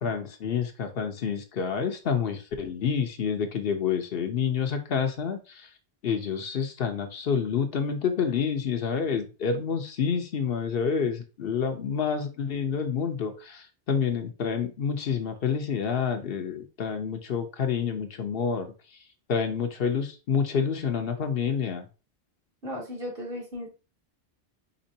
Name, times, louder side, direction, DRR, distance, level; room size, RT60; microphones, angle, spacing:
voice 1, 0.0-5.7 6.0-19.0 19.3-21.9, left 6 dB, 65° left, 6 dB, 0.9 m, -28 dB
voice 2, 22.6-23.7, left 1 dB, 60° right, -2 dB, 2.0 m, -35 dB
5.1 x 3.6 x 2.7 m, 0.32 s
omnidirectional pair, 1.1 m